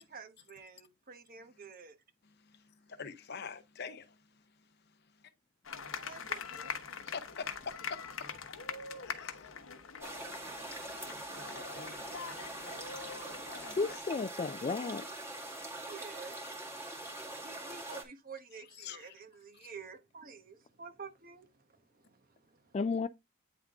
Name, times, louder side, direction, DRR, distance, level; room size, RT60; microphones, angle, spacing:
voice 1, 0.0-2.0 6.0-6.7 15.8-16.4 17.3-22.8, right 5 dB, 45° right, 1.1 m, -50 dB
voice 2, 2.2-4.4 5.2-5.3 7.0-8.0 8.3-8.4 9.0-9.6 12.4-12.5 13.3-13.5 15.2-15.4 18.5-19.1 19.6-19.7, left 5 dB, 55° left, 0.8 m, -46 dB
sound 1, 5.6-14.0, left 6 dB, 85° left, 1.0 m, -43 dB
sound 2, 10.0-18.0, right 2 dB, 10° right, 1.8 m, -43 dB
voice 3, 13.8-15.1 22.7-23.1, left 4 dB, 30° left, 0.3 m, -33 dB
9.4 x 3.6 x 3.6 m
head